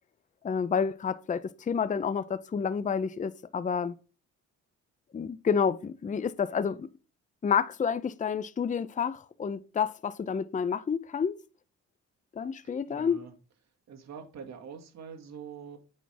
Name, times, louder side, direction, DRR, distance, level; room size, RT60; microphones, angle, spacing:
voice 1, 0.4-3.9 5.1-6.9 7.4-11.4 12.3-13.2, left 6 dB, 25° left, 0.6 m, -29 dB
voice 2, 12.6-13.3 13.9-15.8, right 7 dB, 60° right, 2.1 m, -45 dB
8.6 x 5.8 x 3.5 m
cardioid pair, 90°, 30 cm